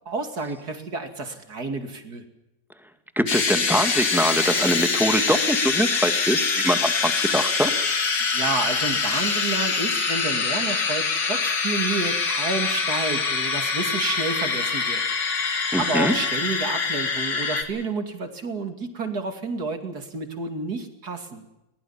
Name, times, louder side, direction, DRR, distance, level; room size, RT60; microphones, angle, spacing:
voice 1, 0.1-2.2 8.3-15.0 15.7-21.4, right 3 dB, 60° right, 7 dB, 3.1 m, -30 dB
voice 2, 3.2-7.7 15.7-16.1, equal, ahead, 8 dB, 1.9 m, -23 dB
sound 1, 3.3-17.6, left 4 dB, 75° left, 3.0 m, -24 dB
22.0 x 20.5 x 7.3 m, 0.94 s
omnidirectional pair, 1.9 m